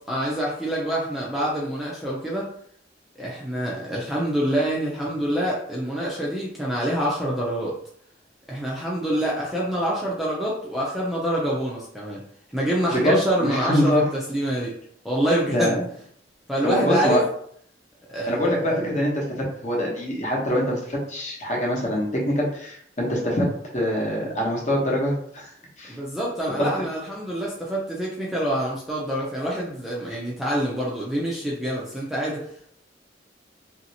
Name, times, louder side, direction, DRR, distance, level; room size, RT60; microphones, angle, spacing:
voice 1, 0.0-2.5 3.2-7.7 8.5-12.2 12.5-14.8 15.0-15.8 16.5-17.2 18.1-19.0 25.9-32.4, right 1 dB, ahead, -5 dB, 0.5 m, -26 dB
voice 2, 12.9-14.0 15.5-15.8 16.6-17.2 18.3-25.5 25.8-26.0 26.6-26.7, equal, 40° left, -3 dB, 0.9 m, -24 dB
3.0 x 2.7 x 2.8 m, 0.65 s
head